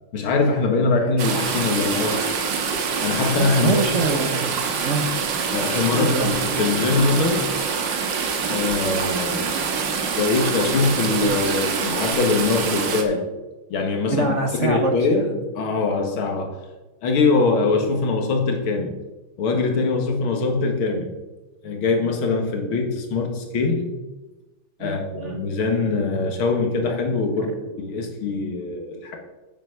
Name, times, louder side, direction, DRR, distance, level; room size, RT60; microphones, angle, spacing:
voice 1, 0.1-2.4 3.0-3.8 5.5-7.5 8.5-9.6 10.2-13.3 13.7-16.6 17.0-18.9 19.4-21.1 21.6-23.9 24.8-29.2, left 3 dB, 80° left, 3 dB, 2.3 m, -22 dB
sound 1, 1.2-13.0, right 6 dB, 65° right, 1.8 m, -25 dB
voice 2, 3.6-5.1 5.9-6.3 14.1-15.3 24.8-25.4, right 3 dB, 50° right, 3 dB, 1.0 m, -25 dB
8.8 x 7.6 x 5.8 m, 1.1 s
omnidirectional pair, 2.2 m